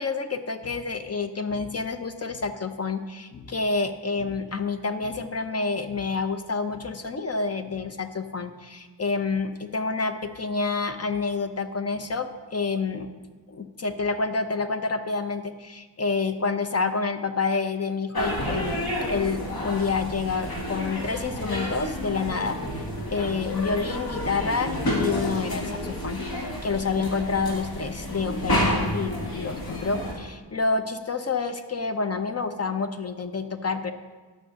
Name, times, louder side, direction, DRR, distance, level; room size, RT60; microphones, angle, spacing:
voice 1, 0.0-13.1 13.5-33.9, left 4 dB, 35° left, 8 dB, 0.8 m, -28 dB
sound 1, 18.1-30.1, equal, 55° left, 2.0 m, -30 dB
11.5 x 5.9 x 7.0 m, 1.3 s
wide cardioid pair, 110°, 45 cm